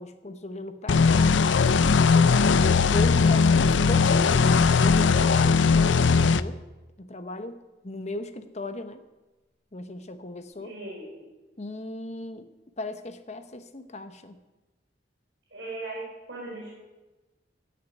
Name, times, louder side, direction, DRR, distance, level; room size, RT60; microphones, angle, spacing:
voice 1, 0.0-1.6 2.1-6.6 7.0-7.6 7.8-9.0 9.7-10.7 11.6-12.5 12.8-14.4, left 2 dB, 40° left, 9 dB, 1.0 m, -37 dB
sound 1, 0.9-6.4, left 5 dB, 85° left, 0.5 m, -19 dB
voice 2, 10.6-11.3 15.5-16.7, right 2 dB, 75° right, -6 dB, 4.8 m, -38 dB
15.0 x 6.6 x 9.2 m, 1.1 s
head